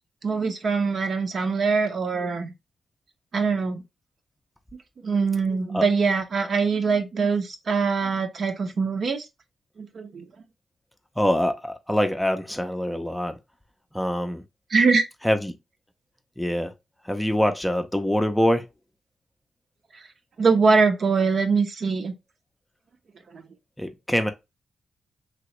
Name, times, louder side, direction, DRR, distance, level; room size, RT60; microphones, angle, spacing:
voice 1, 0.2-2.5 3.3-3.8 5.0-9.2 9.8-10.2 14.7-15.1 19.9-20.0 20.4-22.1 23.3-23.4, right 4 dB, 60° right, 0.7 m, -23 dB
voice 2, 11.2-13.4 13.9-14.4 15.2-15.6 16.4-16.7 17.0-18.7 23.8-24.3, equal, 5° left, 0.5 m, -24 dB
3.0 x 2.9 x 3.0 m
cardioid pair, 80°, 0 cm